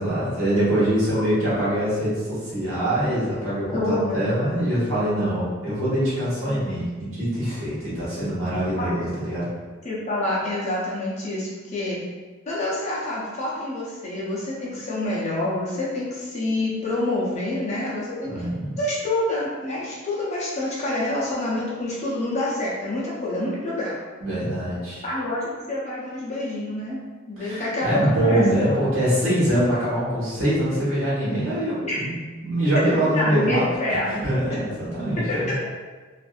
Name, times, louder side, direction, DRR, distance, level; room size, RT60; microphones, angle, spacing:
voice 1, 0.0-9.5 14.7-14.8 18.3-18.7 24.2-25.0 27.4-33.6 34.1-35.5, right 1 dB, 75° right, -9 dB, 1.3 m, -24 dB
voice 2, 3.7-4.3 8.8-9.1 9.8-12.0 12.5-18.3 18.8-24.0 25.0-27.0 27.3-28.8 31.8-32.0 33.1-34.2 35.3-35.5, left 1 dB, 35° left, -6 dB, 0.6 m, -27 dB
2.6 x 2.5 x 2.3 m, 1.4 s
head